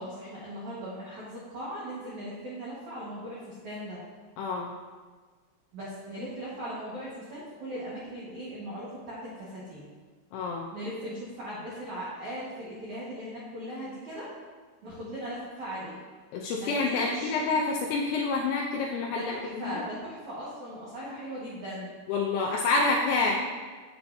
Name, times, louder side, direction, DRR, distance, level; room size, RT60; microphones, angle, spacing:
voice 1, 0.0-4.0 5.7-9.8 10.7-14.3 14.8-16.0 16.6-17.4 19.1-21.9, equal, 85° right, -8 dB, 1.6 m, -38 dB
voice 2, 4.4-4.7 10.3-10.7 16.3-19.8 22.1-23.4, left 3 dB, 85° left, -1 dB, 2.5 m, -28 dB
8.0 x 7.9 x 2.6 m, 1.4 s
omnidirectional pair, 5.7 m